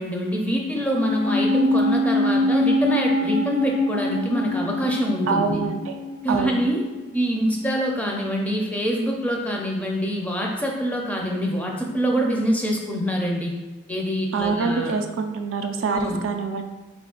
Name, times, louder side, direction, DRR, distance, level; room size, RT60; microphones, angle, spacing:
voice 1, 0.0-5.6 6.2-6.8 7.1-13.5 13.9-14.9 15.9-16.2, equal, 5° left, -1 dB, 0.4 m, -25 dB
sound 1, 0.8-7.3 7.6-7.7, left 1 dB, 65° left, 0.5 m, -24 dB
voice 2, 5.3-5.9 6.3-6.6 14.3-16.6, right 5 dB, 65° right, 6 dB, 0.3 m, -25 dB
4.0 x 2.4 x 3.7 m, 1.2 s
head